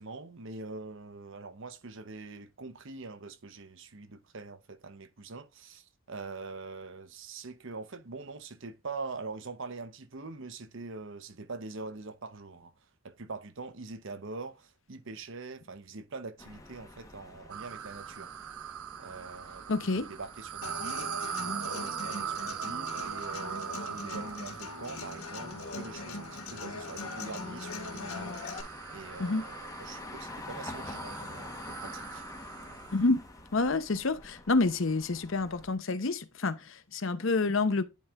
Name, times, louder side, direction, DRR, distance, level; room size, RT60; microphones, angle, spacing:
voice 1, 0.0-12.7 13.0-18.3 19.0-21.1 21.4-32.2, right 3 dB, 60° right, 0.8 m, -44 dB
sound 1, 16.4-35.7, left 2 dB, 15° left, 1.1 m, -48 dB
sound 2, 17.5-33.1, right 10 dB, 75° right, 0.4 m, -41 dB
voice 2, 19.7-20.0 29.2-29.5 32.9-33.2 33.5-37.8, left 3 dB, 60° left, 0.7 m, -28 dB
Human voice / Acoustic guitar, 20.6-28.6, left 3 dB, 80° left, 2.0 m, -40 dB
10.5 x 5.3 x 2.4 m
head